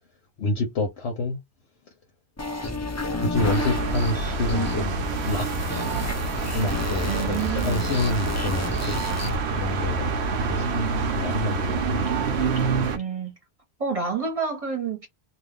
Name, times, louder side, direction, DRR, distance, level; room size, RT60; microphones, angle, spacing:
voice 1, 0.4-1.4 3.2-5.5 6.5-10.2 10.5-12.1, left 2 dB, 80° left, 1.1 m, -28 dB
sound 1, 2.4-9.4, left 2 dB, 20° left, 0.5 m, -31 dB
sound 2, 3.4-13.0, right 4 dB, 85° right, 1.0 m, -27 dB
voice 2, 7.0-8.0 12.9-13.3 13.8-15.1, right 5 dB, 35° right, 1.1 m, -29 dB
2.5 x 2.4 x 3.5 m
omnidirectional pair, 1.1 m